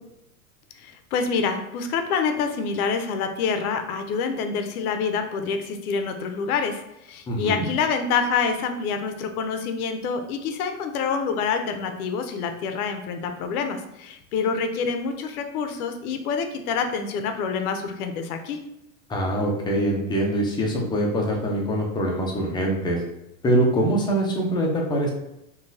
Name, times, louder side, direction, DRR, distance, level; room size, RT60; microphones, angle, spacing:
voice 1, 0.8-6.8 7.1-18.6, left 5 dB, 75° left, 7 dB, 0.7 m, -27 dB
voice 2, 7.3-7.7 19.1-23.0 23.4-25.1, right 1 dB, 10° left, -1 dB, 0.4 m, -23 dB
3.9 x 2.3 x 2.6 m, 0.86 s
supercardioid pair, 120°, 45 cm